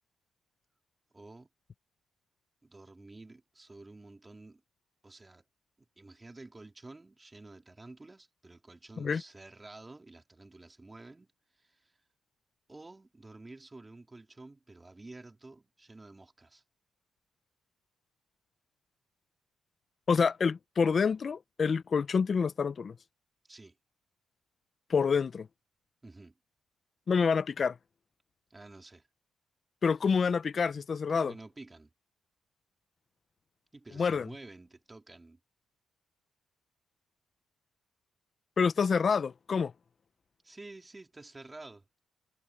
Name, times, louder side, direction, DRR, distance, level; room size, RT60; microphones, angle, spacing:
voice 1, 1.1-1.5 2.6-4.6 5.0-5.4 6.0-11.3 11.5-12.0 12.7-16.6 23.5-23.7 26.0-26.4 28.5-29.1 31.1-31.9 33.7-35.4 40.4-41.9, right 2 dB, 20° right, 3.7 m, -50 dB
voice 2, 20.1-22.9 24.9-25.5 27.1-27.8 29.8-31.3 34.0-34.3 38.6-39.7, left 5 dB, 45° left, 0.6 m, -27 dB
cardioid pair, 100°, 0 cm